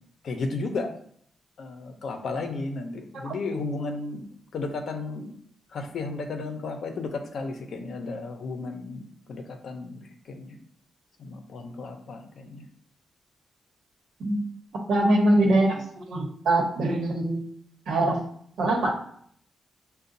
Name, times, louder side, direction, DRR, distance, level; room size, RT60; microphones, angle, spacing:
voice 1, 0.2-0.9 1.6-4.3 4.5-5.3 5.7-10.6 11.2-12.7, left 3 dB, 65° left, 5 dB, 0.6 m, -34 dB
voice 2, 14.9-17.4 17.9-18.2 18.6-18.9, right 1 dB, 80° right, 0 dB, 1.0 m, -23 dB
6.7 x 2.2 x 2.6 m, 0.63 s
wide cardioid pair, 160°, 0 cm